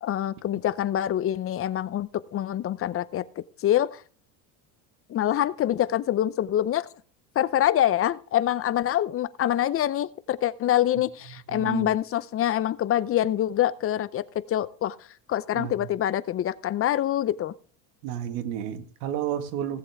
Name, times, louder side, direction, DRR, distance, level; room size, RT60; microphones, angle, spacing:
voice 1, 0.0-4.0 5.1-6.9 7.4-15.0 15.3-17.5, left 12 dB, 30° left, 0.6 m, -25 dB
voice 2, 11.5-11.9 15.5-15.7 18.0-19.8, right 10 dB, 75° right, 1.9 m, -31 dB
16.5 x 7.7 x 3.5 m
supercardioid pair, 130°, 48 cm